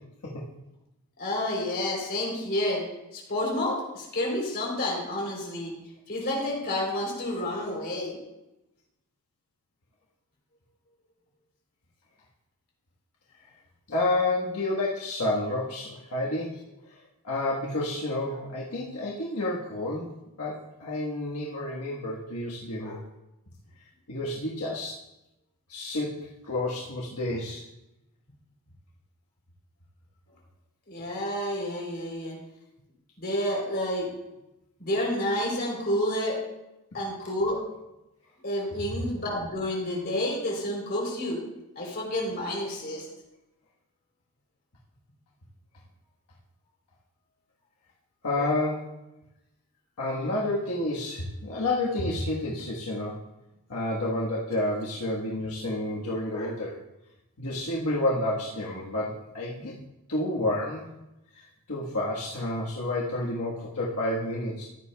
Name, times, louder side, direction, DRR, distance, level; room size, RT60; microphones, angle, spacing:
voice 1, 1.2-2.8 3.1-5.7 6.1-8.2 30.9-32.4 33.2-34.1 34.8-36.4 36.9-37.6 38.4-41.4 41.8-43.1, left 1 dB, 45° left, -2 dB, 3.4 m, -29 dB
voice 2, 13.9-16.6 17.2-23.0 24.1-25.0 25.7-27.6 48.2-48.9 50.0-53.2 53.7-56.8 57.4-59.7 60.1-60.9 61.7-64.6, left 1 dB, 85° left, -4 dB, 1.4 m, -30 dB
15.0 x 10.5 x 2.3 m, 0.94 s
head